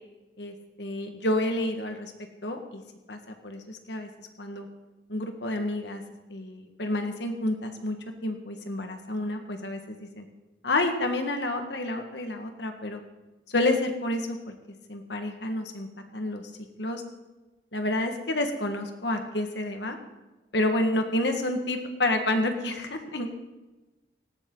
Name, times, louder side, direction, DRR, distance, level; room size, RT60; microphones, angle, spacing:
voice 1, 0.4-2.1 2.4-2.8 3.1-4.1 4.4-4.7 5.1-6.0 6.3-8.0 8.2-10.3 10.6-13.0 13.5-14.5 14.9-15.9 16.1-16.4 16.8-17.0 17.7-20.0 20.5-23.3, left 1 dB, 80° left, 5 dB, 1.8 m, -29 dB
18.5 x 15.5 x 4.0 m, 1.1 s
head